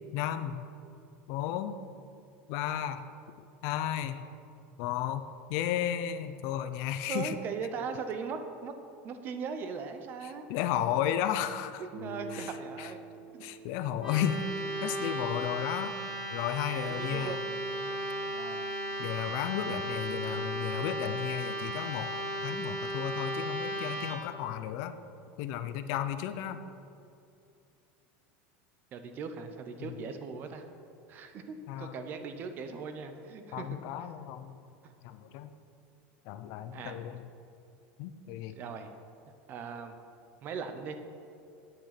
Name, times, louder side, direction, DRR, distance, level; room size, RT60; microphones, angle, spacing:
voice 1, 0.1-0.6 1.3-1.8 2.5-3.1 3.6-4.2 4.8-5.2 5.5-7.4 10.2-11.8 12.3-12.9 13.4-14.5 14.8-16.0 16.3-17.4 19.0-22.1 22.4-24.9 25.4-26.6 29.8-30.0 31.7-32.0 33.5-34.6 35.0-35.5 36.2-37.2 38.0-38.6, left 10 dB, 50° left, 11 dB, 0.6 m, -33 dB
voice 2, 7.1-8.7 9.0-10.4 12.0-13.0 13.3-13.4 15.2-15.3 16.8-17.5 18.3-18.7 28.9-30.6 31.1-33.7 34.8-34.9 36.7-37.0 38.5-38.9 39.5-40.0 40.4-40.9, right 5 dB, 30° right, 7 dB, 0.8 m, -39 dB
Guitar, 11.9-16.7, right 3 dB, 50° right, 2.3 m, -47 dB
sound 1, 14.0-24.1, right 1 dB, 10° right, 2.5 m, -35 dB
9.8 x 8.8 x 5.9 m, 2.6 s
supercardioid pair, 170°, 6 cm